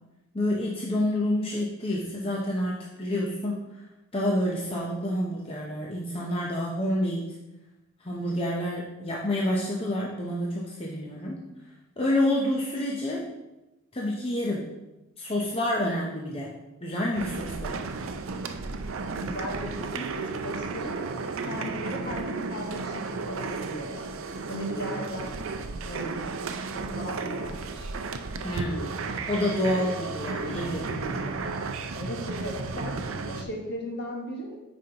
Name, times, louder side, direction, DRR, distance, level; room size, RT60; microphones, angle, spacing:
voice 1, 0.3-3.6 4.1-7.3 8.0-11.4 12.0-13.2 13.9-14.7 15.2-16.5 16.8-17.9 28.4-28.9 29.3-31.4, left 1 dB, 25° left, -3 dB, 0.7 m, -28 dB
sound 1, 17.1-33.4, right 4 dB, 70° right, 0.5 m, -33 dB
voice 2, 19.2-21.0 21.4-24.1 24.5-25.3 25.8-26.2 26.7-27.9 31.9-34.6, equal, 55° left, 0 dB, 1.4 m, -37 dB
8.9 x 5.2 x 2.9 m, 1.0 s
head